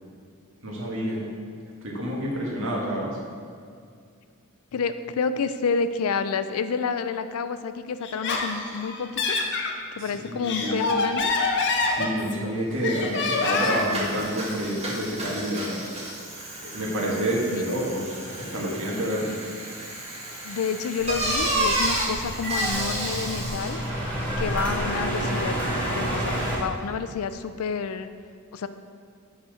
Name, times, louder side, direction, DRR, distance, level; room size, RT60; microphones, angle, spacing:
voice 1, 0.6-1.2 1.8-3.2 10.0-11.0 11.8-15.8 16.7-19.4, right 1 dB, 65° right, -4 dB, 1.8 m, -29 dB
voice 2, 4.7-9.4 9.9-11.3 17.5-17.8 20.4-23.8 24.4-25.6 25.9-28.1 28.5-28.7, left 5 dB, 85° left, 11 dB, 0.4 m, -29 dB
Laughter, 8.0-9.7 10.3-12.5 12.8-14.0, left 3 dB, 55° left, 0.7 m, -26 dB
Bicycle, 12.7-12.8 13.1-23.9, right 1 dB, 30° right, 1.9 m, -31 dB
sound 1, 21.0-26.6, equal, 5° left, 1.7 m, -29 dB
8.5 x 4.3 x 5.0 m, 2.2 s
head